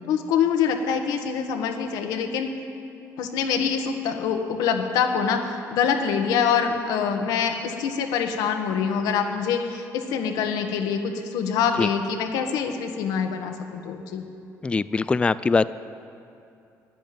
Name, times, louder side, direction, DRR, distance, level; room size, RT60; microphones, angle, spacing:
voice 1, 0.1-2.5 3.2-14.2, left 7 dB, 90° left, 4 dB, 1.4 m, -25 dB
voice 2, 14.6-15.7, left 4 dB, 15° left, 15 dB, 0.3 m, -22 dB
12.0 x 10.5 x 9.3 m, 2.6 s
cardioid pair, 115°, 7 cm